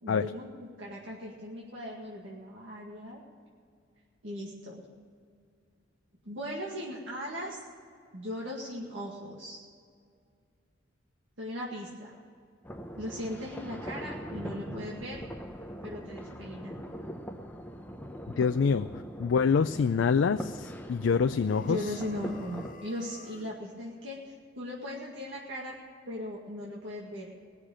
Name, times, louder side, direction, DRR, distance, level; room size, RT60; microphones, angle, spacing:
voice 1, 0.0-3.2 4.2-4.8 6.3-7.6 8.1-9.6 11.4-12.2 13.0-15.2 15.8-16.8 21.7-25.7 26.1-27.3, left 1 dB, 85° right, -4 dB, 2.0 m, -38 dB
sound 1, 12.6-22.7, equal, 10° left, 0.7 m, -41 dB
voice 2, 18.4-18.9 19.2-21.8, left 5 dB, 80° left, 10 dB, 0.4 m, -25 dB
sound 2, 21.4-23.6, left 4 dB, 45° left, 0.8 m, -49 dB
19.0 x 6.6 x 8.7 m, 2.2 s
head